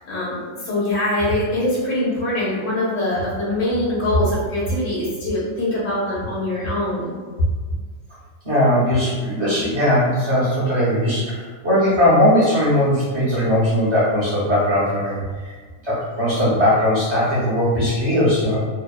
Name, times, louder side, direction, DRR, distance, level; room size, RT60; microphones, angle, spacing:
voice 1, 0.0-7.1, left 1 dB, 85° left, -8 dB, 1.1 m, -23 dB
voice 2, 8.4-15.2 15.4-15.5 15.8-18.6, left 1 dB, 40° right, -10 dB, 0.4 m, -19 dB
2.7 x 2.0 x 2.3 m, 1.5 s
omnidirectional pair, 1.3 m